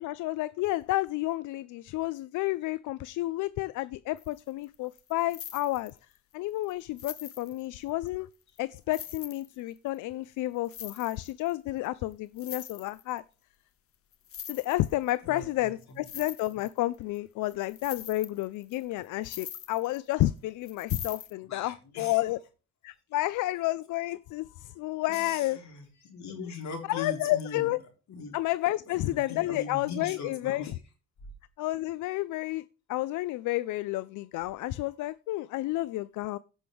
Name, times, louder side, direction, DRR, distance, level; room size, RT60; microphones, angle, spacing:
voice 1, 0.0-6.0 6.3-8.3 8.6-13.2 14.5-22.4 22.8-25.6 26.4-26.5 26.9-27.8 28.3-30.7 31.6-36.4, left 17 dB, 80° left, 0.5 m, -31 dB
sound 1, 4.2-6.2 6.6-6.7 7.0-8.1 8.6-8.7 8.9-10.0 10.6-11.5 11.9-12.0 12.1-13.2 14.1-15.1 15.4-15.5 15.8-17.2 17.5-20.2 20.6-21.3, left 9 dB, 50° left, 0.8 m, -43 dB
voice 2, 15.2-16.1 21.4-22.5 25.1-28.3 28.8-30.8, left 4 dB, 65° left, 3.8 m, -41 dB
16.5 x 6.2 x 3.5 m
cardioid pair, 90°, 30 cm